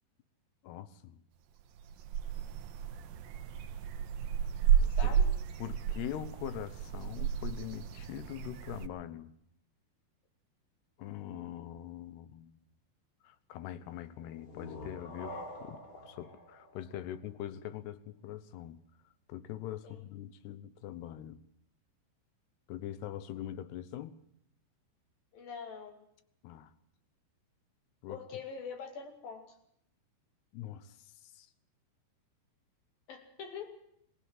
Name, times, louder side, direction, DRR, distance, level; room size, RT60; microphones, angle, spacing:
voice 1, 0.6-1.2 4.7-5.2 5.6-9.3 11.0-12.6 13.2-18.8 19.3-21.4 22.7-24.2 26.4-26.7 28.0-28.2 30.5-31.5, left 12 dB, 75° left, 3.0 m, -43 dB
sound 1, 1.6-8.9, right 8 dB, 70° right, 2.5 m, -32 dB
voice 2, 4.8-5.3 19.8-20.0 25.3-26.0 28.1-29.5 33.1-33.8, left 6 dB, 55° left, 4.1 m, -44 dB
sound 2, 14.2-17.8, left 1 dB, 40° left, 4.9 m, -47 dB
22.0 x 16.5 x 7.4 m
omnidirectional pair, 5.1 m